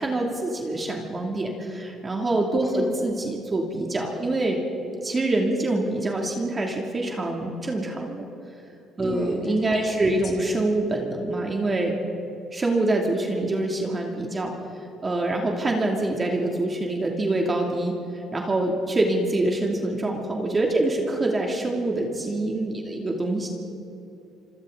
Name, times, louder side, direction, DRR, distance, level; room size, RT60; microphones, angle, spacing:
voice 1, 0.0-4.6 5.0-8.3 9.0-11.9 12.5-14.5 15.0-23.5, right 2 dB, 25° right, 1 dB, 2.7 m, -25 dB
voice 2, 2.6-3.0 9.0-10.4, left 2 dB, 40° left, -2 dB, 5.7 m, -35 dB
26.5 x 25.0 x 4.0 m, 2.9 s
cardioid pair, 105°, 0 cm